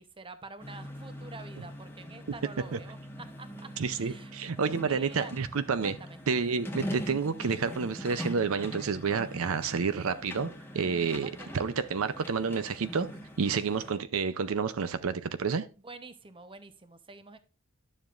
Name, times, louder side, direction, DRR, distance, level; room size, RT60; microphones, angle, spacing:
voice 1, 0.0-4.3 4.7-5.3 5.8-6.2 11.2-11.6 15.8-17.4, right 3 dB, 25° right, 0.8 m, -47 dB
sound 1, 0.6-13.9, equal, 10° left, 1.4 m, -42 dB
voice 2, 3.8-6.0 6.3-13.1 13.4-15.7, right 5 dB, 75° right, 0.6 m, -30 dB
11.0 x 7.2 x 2.5 m
head